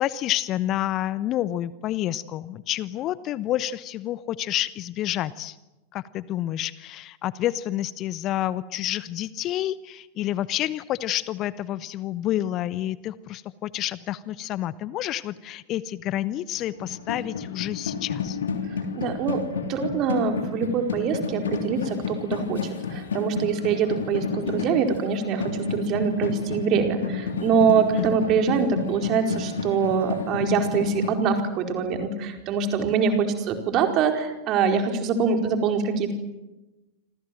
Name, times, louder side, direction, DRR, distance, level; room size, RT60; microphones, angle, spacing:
voice 1, 0.0-5.6 5.9-18.4 27.9-28.0, left 13 dB, 35° left, 18 dB, 0.8 m, -29 dB
sound 1, 16.6-31.1, left 5 dB, 65° left, 3.2 m, -31 dB
voice 2, 18.9-19.4 19.7-36.1, right 6 dB, 35° right, 4 dB, 4.6 m, -24 dB
28.0 x 26.0 x 7.7 m, 1.0 s
figure-of-eight pair, 90°, 0 cm